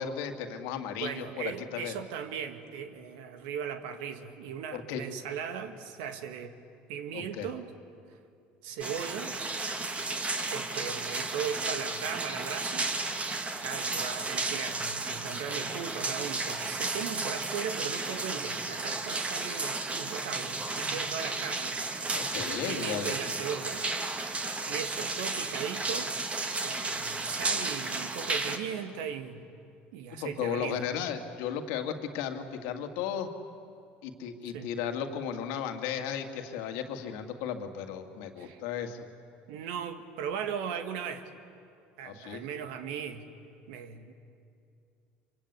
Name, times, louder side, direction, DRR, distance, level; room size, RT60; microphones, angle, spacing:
voice 1, 0.0-2.0 4.7-5.0 7.1-7.5 22.1-23.1 30.2-33.3 34.0-39.1 42.0-42.5, left 8 dB, 75° left, 5 dB, 2.1 m, -35 dB
voice 2, 1.0-6.5 6.9-7.7 8.6-9.4 10.5-12.9 13.6-21.8 22.4-23.9 24.7-26.1 26.6-29.5 29.9-30.9 34.5-34.7 38.4-38.6 39.5-41.2 42.0-43.3 43.7-44.1, right 7 dB, 80° right, 8 dB, 1.9 m, -38 dB
sound 1, 8.8-28.6, right 3 dB, 25° right, 2.4 m, -33 dB
25.0 x 24.5 x 8.3 m, 2.5 s
supercardioid pair, 85°, 5 cm